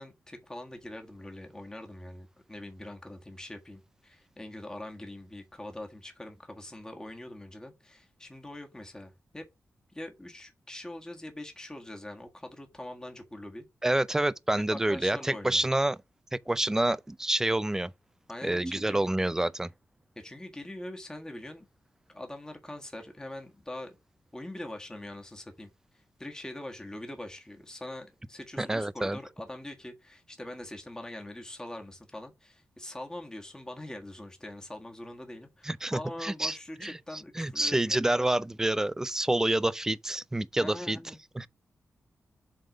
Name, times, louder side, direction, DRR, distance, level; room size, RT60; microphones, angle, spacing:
voice 1, 0.0-9.5 9.9-13.7 14.7-15.7 18.3-19.1 20.1-21.6 22.1-24.0 24.3-38.3 40.6-41.2, left 1 dB, 15° left, 1.6 m, -43 dB
voice 2, 13.8-16.0 16.5-17.9 18.4-19.7 28.6-29.2 35.6-36.6 36.8-36.9 37.4-41.0 41.4-41.5, right 1 dB, 10° right, 0.4 m, -28 dB
7.5 x 3.6 x 5.0 m
wide cardioid pair, 100°, 5 cm